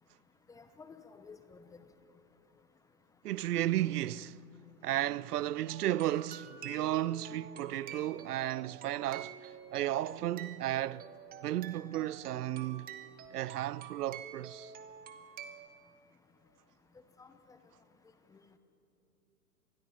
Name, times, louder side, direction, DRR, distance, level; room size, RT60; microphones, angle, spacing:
voice 1, 0.5-1.8 17.2-17.6 18.3-18.4, left 5 dB, 5° left, 0.6 m, -53 dB
voice 2, 3.2-4.4 4.8-11.1 11.4-12.9 13.3-14.7, right 13 dB, 70° right, 0.6 m, -34 dB
sound 1, 5.5-15.7, right 8 dB, 20° right, 1.2 m, -49 dB
25.5 x 20.5 x 5.5 m
hypercardioid pair, 125°, 49 cm